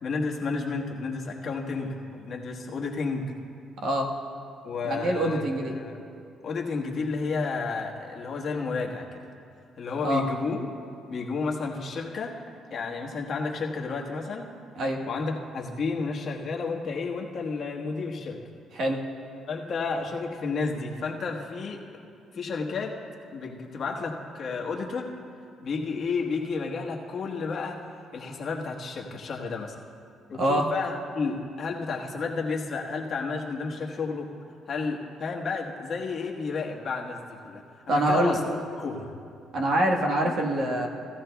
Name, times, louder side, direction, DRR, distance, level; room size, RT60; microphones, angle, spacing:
voice 1, 0.0-3.3 4.6-5.4 5.7-6.0 6.4-9.2 9.8-10.7 11.1-12.4 12.7-14.5 15.1-18.4 19.5-22.1 22.3-23.0 23.3-25.1 25.6-27.8 28.1-29.7 30.3-34.3 34.7-39.1 40.3-40.7, left 4 dB, 50° left, 0 dB, 1.3 m, -31 dB
voice 2, 4.8-5.7 10.0-10.2 14.7-15.0 18.7-19.0 30.4-30.7 37.9-38.4 39.5-40.9, right 1 dB, 60° right, 1 dB, 1.3 m, -25 dB
17.0 x 13.5 x 2.3 m, 2.5 s
cardioid pair, 105°, 0 cm